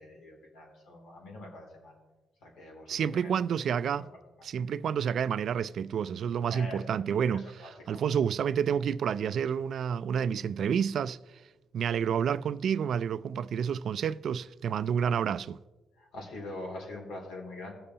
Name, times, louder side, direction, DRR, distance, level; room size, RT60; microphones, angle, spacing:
voice 1, 0.0-2.0 2.4-3.3 3.6-4.2 6.5-7.0 7.3-8.0 16.0-17.7, left 2 dB, 80° left, 2.7 m, -44 dB
voice 2, 2.9-4.0 4.4-7.5 7.9-11.2 11.7-15.6, right 7 dB, 60° right, 0.3 m, -29 dB
19.0 x 6.8 x 2.8 m
cardioid pair, 90°, 0 cm